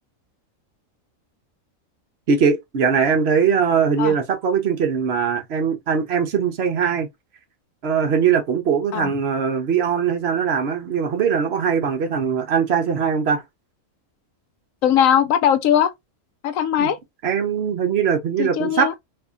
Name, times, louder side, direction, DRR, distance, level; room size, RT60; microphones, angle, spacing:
voice 1, 2.3-7.1 7.8-13.4 16.8-16.9 17.2-19.0, right 6 dB, 60° right, 0.9 m, -21 dB
voice 2, 14.8-15.9 16.4-17.0 18.4-18.9, left 9 dB, 80° left, 1.0 m, -19 dB
2.7 x 2.6 x 3.5 m
omnidirectional pair, 1.4 m